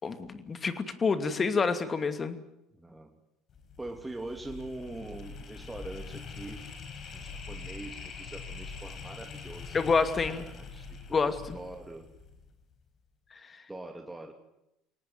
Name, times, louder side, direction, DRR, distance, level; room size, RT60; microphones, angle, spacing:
voice 1, 0.0-2.4 9.7-10.4 11.1-11.6 13.3-13.6, left 4 dB, 30° left, 10 dB, 2.6 m, -28 dB
voice 2, 2.7-3.1 3.8-6.6 7.1-9.8 10.2-11.2 11.5-12.1 13.7-14.3, right 2 dB, 10° right, 3 dB, 2.9 m, -43 dB
sound 1, 3.5-12.6, left 5 dB, 45° left, 4.6 m, -44 dB
23.0 x 18.5 x 9.5 m, 0.84 s
hypercardioid pair, 75°, 0 cm